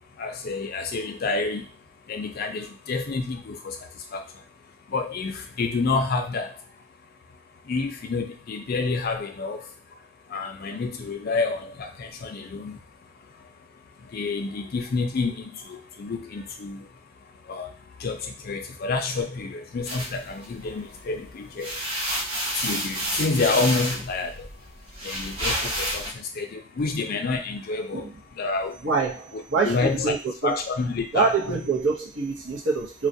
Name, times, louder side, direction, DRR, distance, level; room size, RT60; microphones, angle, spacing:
voice 1, 0.2-1.7 2.1-3.8 4.1-4.2 4.9-6.5 7.7-9.6 10.3-12.8 14.1-15.3 15.7-16.8 17.5-17.7 18.0-21.7 22.6-24.3 25.0-28.0 28.4-28.8 29.3-30.0 30.4-31.6, left 3 dB, 50° left, 5 dB, 0.4 m, -28 dB
sound 1, 19.9-21.0 21.4-26.1, equal, 30° right, 0.7 m, -30 dB
voice 2, 28.8-30.5 31.1-33.1, right 4 dB, 70° right, 0 dB, 0.7 m, -25 dB
2.3 x 2.1 x 2.6 m, 0.32 s
head